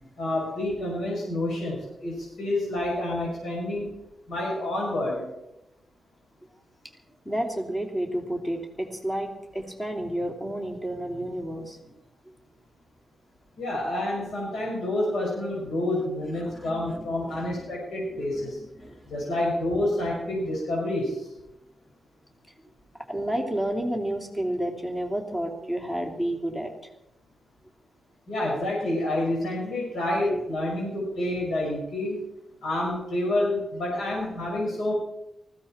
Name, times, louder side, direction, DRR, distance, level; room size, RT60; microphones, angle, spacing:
voice 1, 0.2-3.9 4.3-5.3 13.6-18.6 19.1-21.3 28.3-32.2 32.6-34.9, left 1 dB, 80° left, -4 dB, 5.8 m, -28 dB
voice 2, 7.2-12.0 16.3-17.5 18.3-18.5 18.8-19.0 23.1-26.7 30.2-30.4, right 1 dB, 15° left, 2 dB, 3.0 m, -31 dB
20.0 x 15.5 x 4.4 m, 0.89 s
wide cardioid pair, 130°, 0 cm